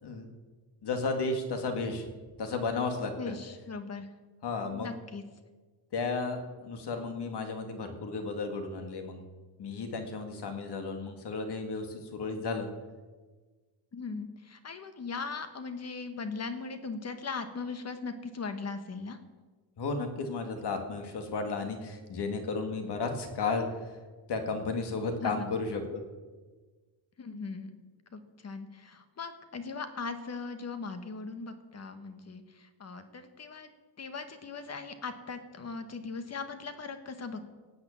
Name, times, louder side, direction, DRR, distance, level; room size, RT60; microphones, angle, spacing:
voice 1, 0.8-2.1 2.4-3.3 4.4-4.9 5.9-9.2 9.6-12.7 19.8-23.9 24.3-26.0, left 4 dB, 60° left, 5 dB, 2.2 m, -33 dB
voice 2, 3.1-4.1 4.7-5.2 13.9-19.2 25.1-25.5 27.2-27.7 28.1-33.7 34.0-37.4, left 4 dB, 35° left, 9 dB, 1.3 m, -39 dB
18.0 x 8.0 x 7.2 m, 1.4 s
wide cardioid pair, 160°, 45 cm